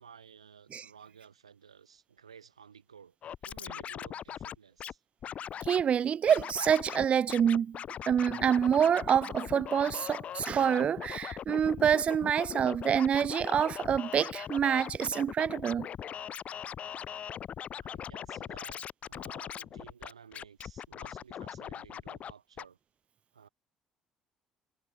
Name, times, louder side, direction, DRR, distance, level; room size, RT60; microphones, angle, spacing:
voice 1, 0.0-3.2 3.4-5.0 17.8-22.8 23.3-23.5, right 7 dB, 85° right, 2.2 m, -54 dB
Scratching (performance technique), 3.2-4.9 5.2-5.8 6.3-7.0 7.3-22.3 22.6-22.7, left 9 dB, 45° left, 0.4 m, -40 dB
voice 2, 5.6-7.8 8.1-15.9, right 8 dB, 40° right, 0.3 m, -27 dB
figure-of-eight pair, 50°, 3 cm